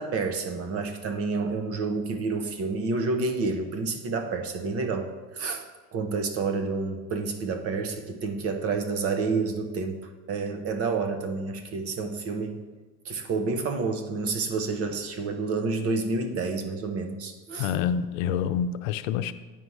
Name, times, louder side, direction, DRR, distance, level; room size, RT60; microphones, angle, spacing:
voice 1, 0.0-5.6 5.9-12.6 13.0-17.7, right 4 dB, 35° right, 6 dB, 0.9 m, -29 dB
voice 2, 17.6-19.3, left 8 dB, 90° left, 11 dB, 0.6 m, -27 dB
9.0 x 4.8 x 5.5 m, 1.3 s
cardioid pair, 155°, 39 cm